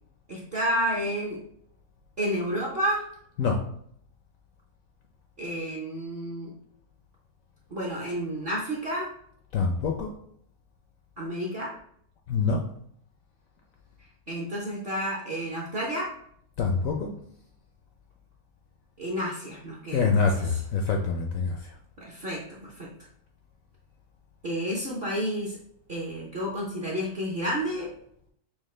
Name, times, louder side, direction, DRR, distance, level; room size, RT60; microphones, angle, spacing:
voice 1, 0.3-1.4 2.2-3.1 5.4-6.5 7.7-9.1 11.2-11.7 14.3-16.1 19.0-20.6 22.0-22.9 24.4-25.6 25.9-27.9, equal, 45° right, -3 dB, 0.8 m, -30 dB
voice 2, 9.5-10.1 12.3-12.6 16.6-17.2 19.9-21.6, left 5 dB, 70° left, 2 dB, 0.8 m, -25 dB
6.2 x 2.1 x 3.2 m, 0.66 s
omnidirectional pair, 1.9 m